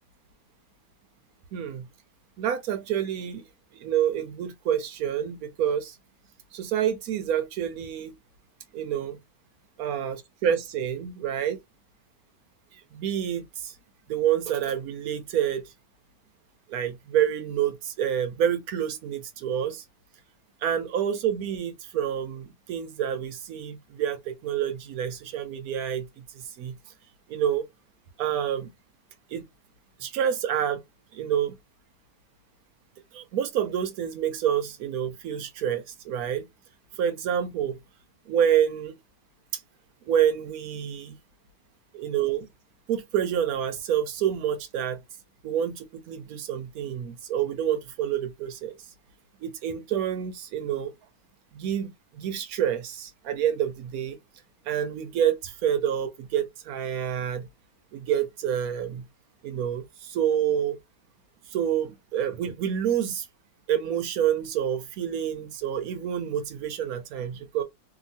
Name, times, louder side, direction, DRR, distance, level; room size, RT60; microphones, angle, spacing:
voice 1, 1.5-1.9 2.4-3.5 3.7-5.9 6.5-8.1 8.7-9.2 9.8-10.2 10.4-11.6 12.9-13.7 14.1-15.6 16.7-19.8 20.6-26.8 27.3-27.6 28.2-28.7 29.3-29.4 30.0-30.8 31.1-31.5 33.1-36.4 37.0-37.8 38.3-38.9 39.5-39.6 40.1-41.2 41.9-42.5 42.9-45.0 45.4-48.8 49.4-50.9 51.5-54.2 54.7-57.5 57.9-59.1 59.4-60.8 61.5-63.3 63.7-67.6, right 9 dB, 70° right, 1.1 m, -28 dB
2.9 x 2.6 x 2.6 m
omnidirectional pair, 1.8 m